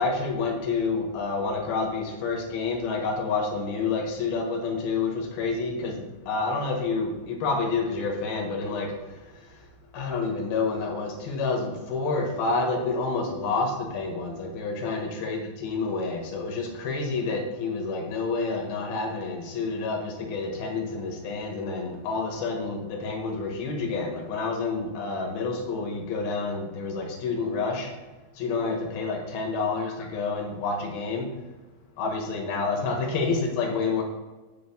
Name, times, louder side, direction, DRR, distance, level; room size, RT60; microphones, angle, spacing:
voice 1, 0.0-9.5 9.9-27.9 28.3-31.3 32.0-34.0, left 4 dB, 65° left, 1 dB, 3.2 m, -29 dB
15.5 x 6.2 x 2.2 m, 1.2 s
omnidirectional pair, 4.8 m